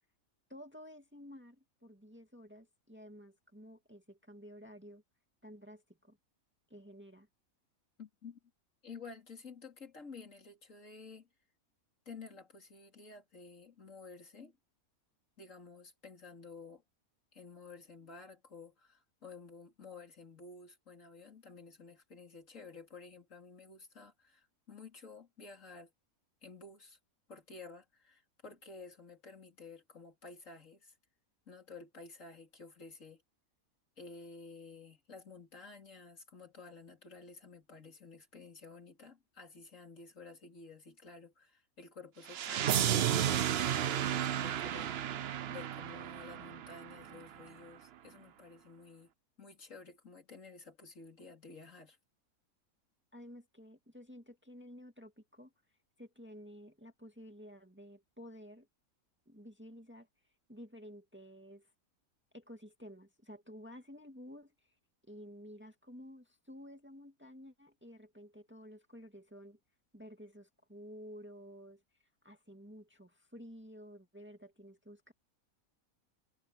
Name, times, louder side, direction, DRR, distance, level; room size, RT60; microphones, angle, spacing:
voice 1, 0.5-5.0 5.4-6.2 6.7-7.3 53.1-55.5 56.0-58.7 59.3-60.1 60.5-61.7 62.3-64.7 65.1-69.6 69.9-71.8 72.2-75.1, equal, 10° right, 2.1 m, -52 dB
voice 2, 8.0-8.4 8.8-11.3 12.1-14.6 15.4-16.8 17.3-25.9 26.4-27.0 27.3-30.9 31.5-33.2 34.0-45.2 45.5-49.1 49.4-52.0, left 4 dB, 60° left, 3.5 m, -52 dB
sound 1, 42.3-47.2, right 10 dB, 55° right, 0.7 m, -33 dB
omnidirectional pair, 1.5 m